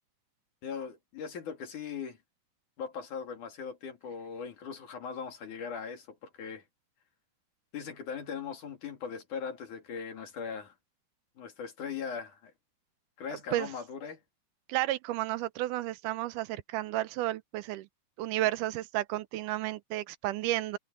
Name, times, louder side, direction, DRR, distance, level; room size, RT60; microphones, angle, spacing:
voice 1, 0.6-2.2 2.8-6.6 7.7-10.7 11.4-12.5 13.2-14.2, left 6 dB, 70° left, 4.2 m, -39 dB
voice 2, 14.7-17.9 18.2-20.8, right 15 dB, 80° right, 2.1 m, -32 dB
omnidirectional pair, 3.8 m